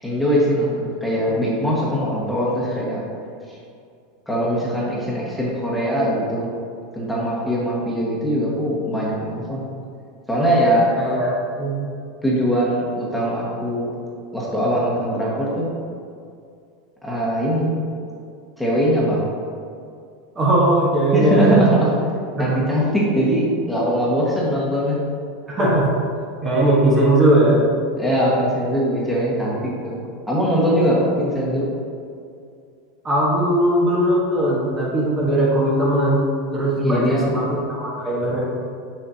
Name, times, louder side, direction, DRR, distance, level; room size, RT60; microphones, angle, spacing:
voice 1, 0.0-3.0 4.3-6.5 6.9-9.7 10.3-10.9 12.2-13.9 14.3-15.7 17.0-17.7 18.6-19.3 21.1-21.9 22.4-25.0 28.0-30.0 30.3-31.7 36.8-37.3, equal, ahead, -6 dB, 1.5 m, -21 dB
voice 2, 10.9-11.8 20.3-21.7 22.4-22.6 25.5-25.9 26.4-27.7 33.0-38.4, right 1 dB, 25° right, -5 dB, 1.3 m, -19 dB
6.5 x 5.9 x 2.8 m, 2.4 s
supercardioid pair, 130°, 0 cm